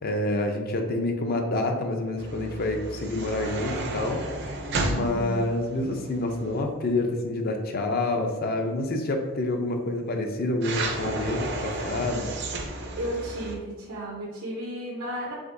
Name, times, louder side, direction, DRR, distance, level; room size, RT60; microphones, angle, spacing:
voice 1, 0.0-4.5 4.8-12.3, left 2 dB, 45° left, 4 dB, 0.5 m, -28 dB
sound 1, 2.2-6.6 10.6-13.6, right 2 dB, 50° right, 0.6 m, -33 dB
voice 2, 4.9-5.5 12.9-15.3, right 1 dB, 85° right, -5 dB, 0.8 m, -34 dB
4.9 x 3.5 x 2.6 m, 1.4 s
head